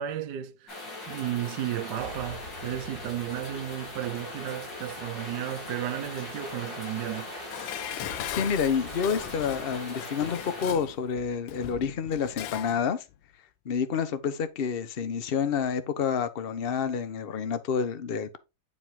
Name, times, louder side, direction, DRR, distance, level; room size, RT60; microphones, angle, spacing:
voice 1, 0.0-7.3, right 12 dB, 70° right, 1.2 m, -34 dB
sound 1, 0.7-10.7, left 2 dB, 65° left, 4.6 m, -40 dB
sound 2, 2.0-11.0, equal, 25° left, 2.8 m, -49 dB
Dishes pots and pans, 7.5-12.8 13.1-13.2, left 13 dB, 80° left, 1.3 m, -39 dB
voice 2, 8.4-13.0 13.6-18.4, left 6 dB, 50° left, 0.7 m, -29 dB
9.8 x 4.8 x 3.7 m
omnidirectional pair, 2.1 m